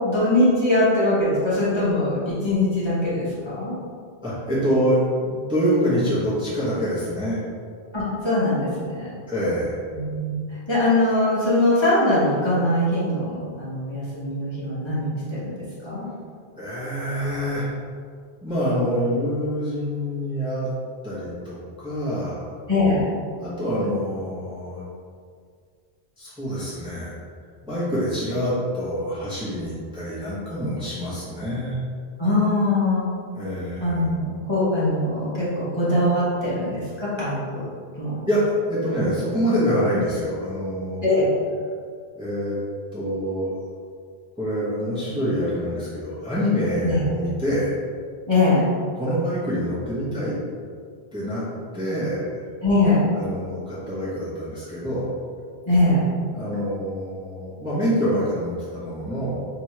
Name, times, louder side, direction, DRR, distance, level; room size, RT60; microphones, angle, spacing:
voice 1, 0.0-3.8 7.9-9.1 9.9-10.4 10.7-15.5 15.8-16.1 22.7-23.1 32.2-33.1 33.8-37.7 38.0-38.1 41.0-41.3 46.8-47.0 48.3-48.6 52.6-53.1 55.7-56.0, left 2 dB, 25° left, -11 dB, 1.2 m, -22 dB
voice 2, 4.2-7.4 9.3-9.8 16.5-17.7 18.4-20.7 21.0-22.5 23.4-24.8 26.2-27.2 27.6-31.8 33.3-33.9 38.3-38.4 38.7-41.0 42.1-42.6 42.9-43.5 44.4-47.8 48.9-50.3 51.1-51.4 51.7-52.2 53.1-55.1 56.3-59.4, equal, 5° right, -10 dB, 1.0 m, -26 dB
3.5 x 2.9 x 4.5 m, 2.1 s
omnidirectional pair, 1.1 m